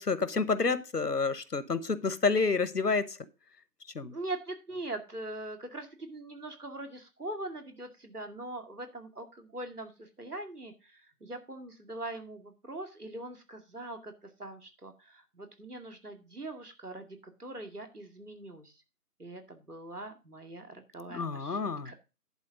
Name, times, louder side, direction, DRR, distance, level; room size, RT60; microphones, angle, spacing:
voice 1, 0.0-3.2 3.9-4.1 21.1-22.0, left 4 dB, 85° left, 1.1 m, -29 dB
voice 2, 4.1-14.1 14.4-17.1 17.4-18.7 19.2-21.9, right 2 dB, 75° right, 2.3 m, -42 dB
11.0 x 4.3 x 6.3 m
figure-of-eight pair, 175°, 46 cm